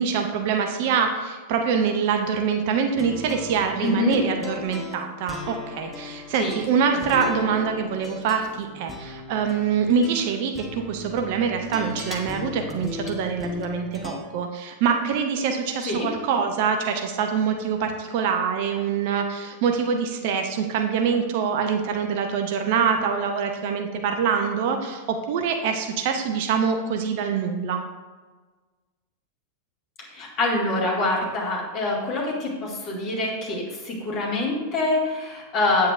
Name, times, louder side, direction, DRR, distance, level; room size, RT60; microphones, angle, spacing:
voice 1, 0.0-27.8, right 6 dB, 50° right, 4 dB, 0.7 m, -25 dB
sound 1, 2.9-14.1, left 3 dB, 15° left, 1.0 m, -37 dB
voice 2, 3.8-4.2 6.3-6.6 15.8-16.1 30.0-35.9, left 2 dB, 35° left, -3 dB, 2.1 m, -25 dB
8.7 x 7.3 x 2.5 m, 1.3 s
figure-of-eight pair, 90°, 0 cm